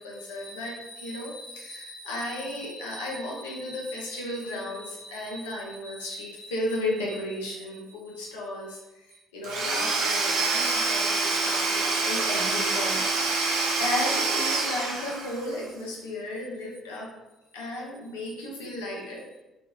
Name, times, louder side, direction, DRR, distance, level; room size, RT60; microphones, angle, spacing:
voice 1, 0.0-8.8 9.1-17.1 17.5-19.4, left 1 dB, 75° left, -3 dB, 0.8 m, -34 dB
Domestic sounds home sounds / Tools, 9.4-15.5, right 3 dB, 65° right, 0.7 m, -26 dB
2.9 x 2.6 x 3.5 m, 1.0 s
figure-of-eight pair, 50°, 0 cm